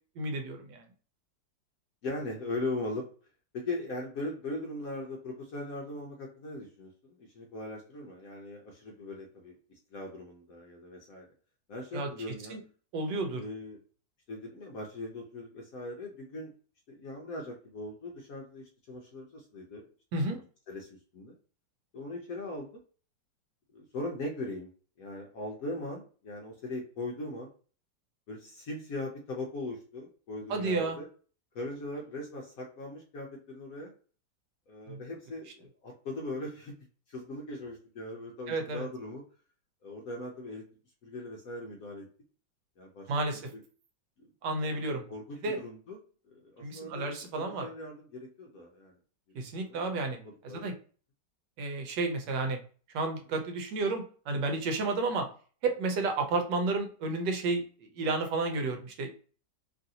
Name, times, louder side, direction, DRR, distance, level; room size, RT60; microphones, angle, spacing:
voice 1, 0.2-0.8 11.9-12.1 12.5-12.6 12.9-13.4 20.1-20.4 30.5-31.0 34.9-35.0 38.5-38.9 43.1-43.4 44.4-45.0 45.4-45.6 46.6-47.7 49.3-50.2 50.4-50.7 51.6-52.6 52.9-55.3 55.6-57.6 57.9-59.1, right 3 dB, 75° right, 4 dB, 1.2 m, -31 dB
voice 2, 2.0-3.0 3.5-9.6 9.9-11.3 11.7-12.5 13.3-13.8 14.3-16.5 16.9-19.8 20.3-20.4 20.7-21.4 21.9-22.8 23.7-24.7 25.0-27.5 28.3-31.1 31.5-33.9 34.7-36.7 37.1-39.2 39.8-40.6 41.0-42.1 42.8-43.1 44.2-44.3 45.1-46.0 46.3-48.9 49.6-50.6, left 2 dB, 65° left, 0 dB, 0.9 m, -40 dB
3.1 x 2.6 x 2.7 m, 0.40 s
omnidirectional pair, 2.0 m